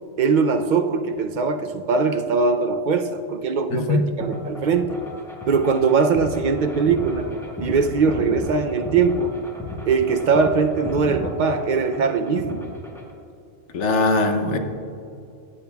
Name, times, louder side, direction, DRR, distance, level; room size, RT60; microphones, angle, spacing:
voice 1, 0.2-5.0 5.5-7.3 7.6-9.4 9.9-12.7, right 5 dB, 55° right, 6 dB, 0.5 m, -21 dB
voice 2, 3.7-4.0 13.7-14.6, left 3 dB, 70° left, 5 dB, 1.1 m, -20 dB
sound 1, 4.2-13.1, left 1 dB, ahead, 1.1 m, -34 dB
16.5 x 8.7 x 2.3 m, 2.5 s
omnidirectional pair, 1.3 m